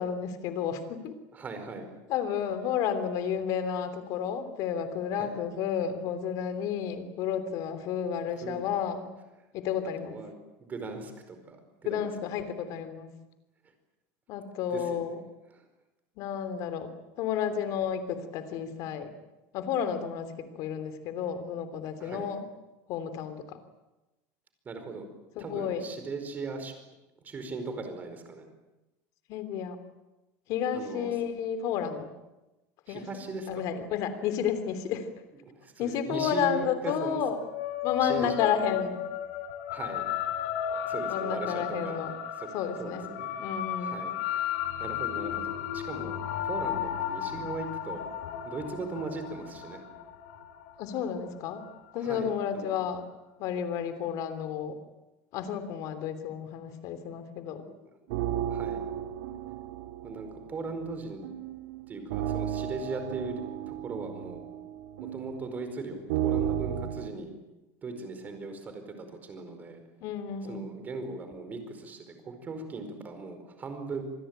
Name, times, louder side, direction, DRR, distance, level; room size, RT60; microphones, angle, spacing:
voice 1, 0.0-1.2 2.1-9.1 9.5-10.2 11.8-13.1 14.3-15.2 16.2-16.9 17.2-19.1 19.5-20.3 20.5-22.5 22.9-23.6 25.3-25.9 29.3-29.8 30.5-32.1 32.9-33.1 33.5-35.1 35.8-37.4 37.8-39.0 41.1-42.1 42.5-43.1 43.4-44.0 50.8-51.6 51.9-53.0 53.4-54.8 55.3-57.6 70.0-70.7, left 8 dB, 50° left, 10 dB, 3.2 m, -31 dB
voice 2, 1.3-1.9 5.1-5.3 8.4-8.8 10.0-10.3 10.6-11.6 11.8-12.1 14.7-15.0 15.5-15.6 22.0-22.3 24.6-25.1 25.4-26.7 27.2-28.4 30.7-31.1 32.9-33.6 35.5-37.2 38.0-38.8 39.7-40.0 40.8-42.0 42.4-42.5 42.8-43.3 43.8-44.4 44.8-46.2 46.4-48.0 48.4-49.8 51.9-52.7 58.5-58.8 60.0-61.2 61.9-64.4 65.0-67.3 67.8-69.8 70.5-74.0, right 3 dB, 20° right, 7 dB, 4.8 m, -38 dB
sound 1, 37.3-52.0, left 10 dB, 85° left, 3.2 m, -34 dB
sound 2, 58.1-67.1, right 10 dB, 85° right, 2.3 m, -34 dB
26.5 x 20.5 x 9.0 m, 1.0 s
cardioid pair, 160°, 8 cm